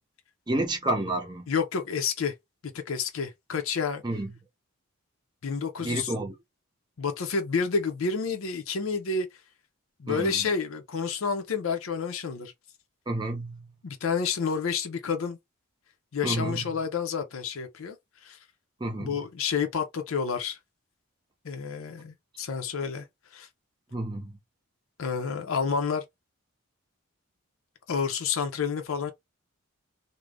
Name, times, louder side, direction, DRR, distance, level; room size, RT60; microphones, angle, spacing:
voice 1, 0.5-1.5 4.0-4.3 5.8-6.3 10.1-10.4 13.1-13.7 16.2-16.6 18.8-19.2 23.9-24.3, right 2 dB, 20° right, 0.6 m, -30 dB
voice 2, 1.5-2.3 2.9-4.0 5.4-6.1 7.0-9.3 10.0-12.5 13.8-15.4 16.1-18.0 18.2-18.4 19.0-20.6 21.4-23.0 23.3-23.5 25.0-26.0 27.9-29.1, left 5 dB, 65° left, 0.5 m, -29 dB
2.4 x 2.0 x 3.2 m
head